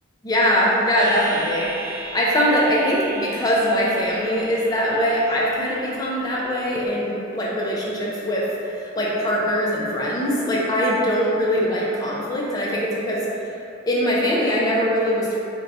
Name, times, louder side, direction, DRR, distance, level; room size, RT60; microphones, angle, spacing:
voice 1, 0.2-8.4 8.8-13.2 13.9-15.4, equal, 20° left, -6 dB, 0.5 m, -22 dB
sound 1, 1.0-6.9, right 3 dB, 80° right, 0.8 m, -37 dB
2.5 x 2.2 x 4.0 m, 2.8 s
head